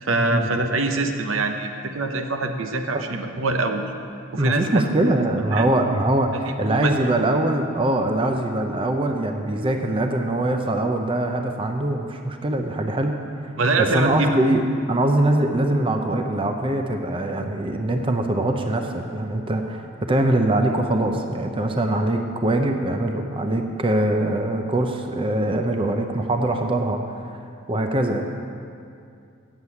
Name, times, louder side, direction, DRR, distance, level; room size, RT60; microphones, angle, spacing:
voice 1, 0.0-3.8 4.3-4.8 5.5-5.6 6.7-7.1 13.6-14.3, right 3 dB, 75° right, 6 dB, 0.8 m, -24 dB
voice 2, 4.4-14.6 14.9-27.0 27.7-28.2, right 1 dB, 25° right, 4 dB, 0.6 m, -23 dB
8.0 x 7.3 x 8.3 m, 2.4 s
head